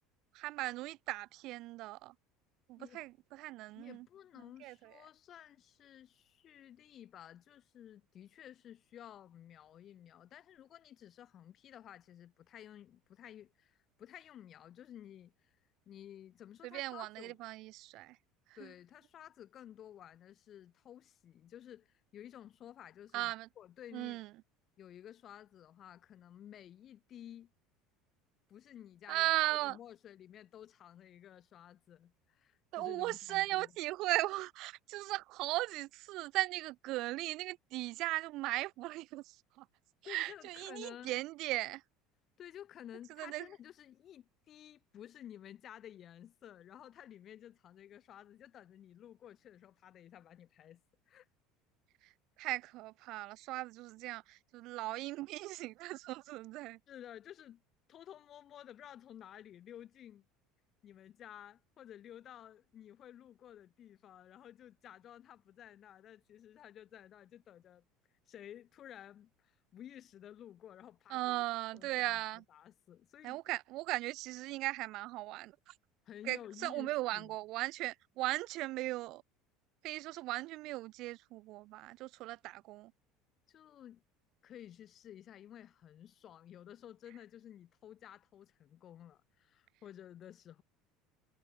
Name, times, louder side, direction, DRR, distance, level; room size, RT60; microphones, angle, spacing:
voice 1, 0.3-2.1 2.7-4.1 4.6-4.7 16.6-18.2 23.1-23.5 23.9-24.3 29.1-29.8 32.7-39.6 40.1-41.8 43.2-43.5 52.4-56.8 71.1-72.4 73.2-75.7 76.3-79.2 79.8-82.9, right 18 dB, 60° right, 0.4 m, -37 dB
voice 2, 3.8-15.6 15.9-17.4 18.5-24.2 24.8-27.5 28.5-29.3 29.6-33.7 40.0-41.2 42.4-50.8 51.1-51.3 56.9-57.6 57.9-60.3 60.8-67.8 68.3-71.4 71.7-73.4 76.0-77.4 83.5-84.0 84.4-90.6, left 10 dB, 45° left, 1.5 m, -53 dB
hypercardioid pair, 70°, 0 cm